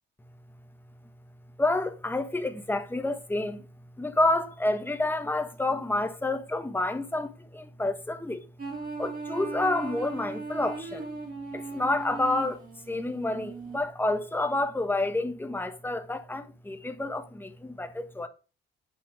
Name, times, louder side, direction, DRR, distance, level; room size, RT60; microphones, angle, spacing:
voice 1, 1.6-3.6 4.0-8.4 9.0-11.0 11.5-12.6 12.9-18.3, left 2 dB, 10° left, 1.4 m, -29 dB
sound 1, 8.6-13.8, right 4 dB, 45° right, 3.8 m, -38 dB
9.0 x 5.7 x 4.9 m
cardioid pair, 90°, 20 cm